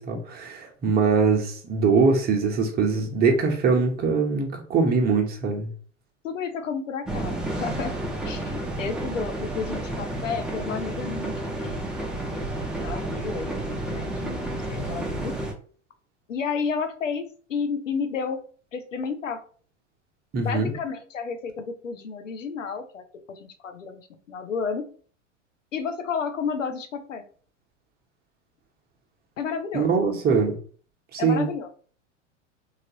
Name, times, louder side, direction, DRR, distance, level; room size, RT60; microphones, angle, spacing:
voice 1, 0.0-5.7 20.3-20.7 29.7-30.6 31.1-31.5, right 4 dB, 25° right, 2 dB, 0.8 m, -22 dB
voice 2, 6.2-7.9 8.2-15.4 16.3-18.4 18.7-19.4 20.4-24.0 24.3-24.9 25.7-27.2 29.4-29.9 31.2-31.7, left 5 dB, 85° left, 8 dB, 0.6 m, -32 dB
sound 1, 7.0-15.5, right 1 dB, ahead, 0.4 m, -31 dB
3.1 x 2.4 x 2.8 m, 0.43 s
hypercardioid pair, 95°, 37 cm